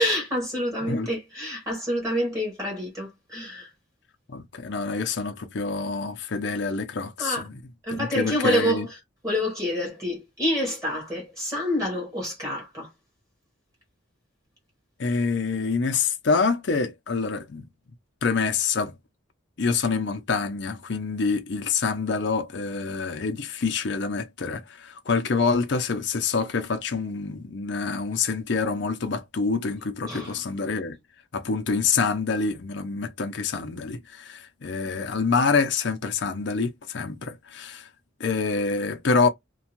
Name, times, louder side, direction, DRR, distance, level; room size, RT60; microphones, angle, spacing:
voice 1, 0.0-3.7 7.2-7.4 7.8-8.8 9.2-12.9 30.1-30.4, equal, 15° right, 1.1 m, -27 dB
voice 2, 4.3-7.6 7.9-8.9 15.0-17.7 18.2-18.9 19.6-31.0 31.3-37.9 38.2-39.3, left 4 dB, 55° left, 0.5 m, -26 dB
2.5 x 2.3 x 2.9 m
head